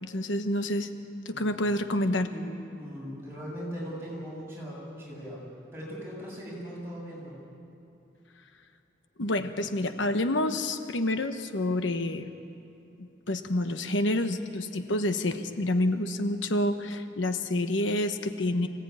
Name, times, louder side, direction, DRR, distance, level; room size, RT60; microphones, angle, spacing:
voice 1, 0.0-0.9 1.2-2.3 9.2-12.3 13.0-18.7, left 1 dB, 85° left, 8 dB, 1.1 m, -28 dB
voice 2, 1.3-1.7 2.2-2.5 2.7-5.4 5.7-7.3, equal, 15° right, -5 dB, 7.7 m, -39 dB
25.0 x 17.0 x 9.5 m, 2.7 s
head